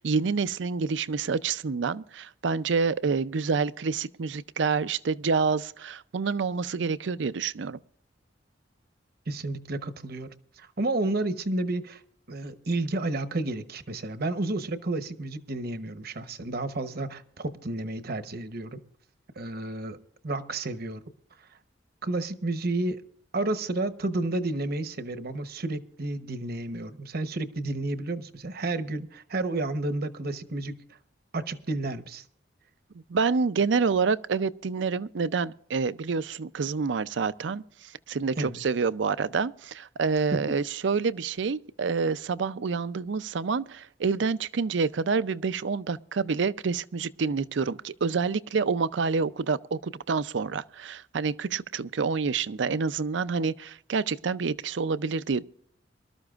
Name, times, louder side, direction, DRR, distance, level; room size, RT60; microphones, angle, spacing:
voice 1, 0.0-7.8 33.1-55.4, right 5 dB, 70° right, 0.5 m, -28 dB
voice 2, 9.3-12.0 12.3-18.8 19.4-20.0 20.2-21.0 22.0-23.0 23.3-30.8 31.3-32.2 38.4-38.6 40.3-40.6, right 2 dB, 55° right, 0.9 m, -31 dB
24.5 x 13.0 x 2.4 m
head